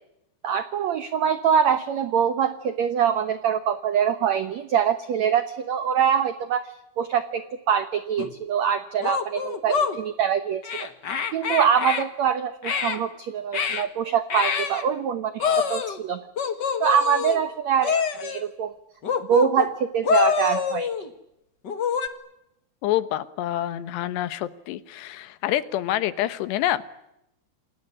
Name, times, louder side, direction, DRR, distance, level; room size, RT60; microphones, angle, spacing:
voice 1, 0.4-10.9 11.3-16.2 16.8-18.7 19.3-20.9, right 8 dB, 80° right, 11 dB, 1.5 m, -24 dB
sound 1, 8.2-8.3 9.0-10.0 10.6-12.0 12.6-13.0 13.5-13.9 14.3-14.8 15.4-16.0 16.4-17.4 17.8-18.4 19.0-19.7 20.0-21.1 21.6-22.1, left 7 dB, 65° left, 1.0 m, -26 dB
voice 2, 22.8-26.8, left 13 dB, 85° left, 14 dB, 3.3 m, -27 dB
28.5 x 19.5 x 9.9 m, 0.85 s
omnidirectional pair, 4.8 m